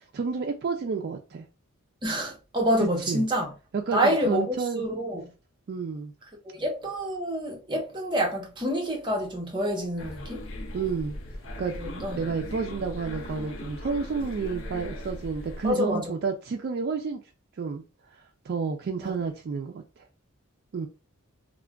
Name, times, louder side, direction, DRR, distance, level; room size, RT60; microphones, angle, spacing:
voice 1, 0.1-1.4 3.1-3.2 3.7-4.8 5.7-6.1 10.7-11.2 11.6-11.8 12.2-17.2 17.6-17.8 18.4-20.0 20.7-20.9, right 5 dB, 50° right, 0.3 m, -30 dB
voice 2, 2.0-3.5 3.9-5.2 6.4-10.5 11.7-12.2 15.6-16.1 19.0-19.1, equal, 20° right, 0.8 m, -27 dB
sound 1, 10.0-15.7, left 1 dB, 60° left, 0.6 m, -38 dB
2.4 x 2.2 x 3.4 m
head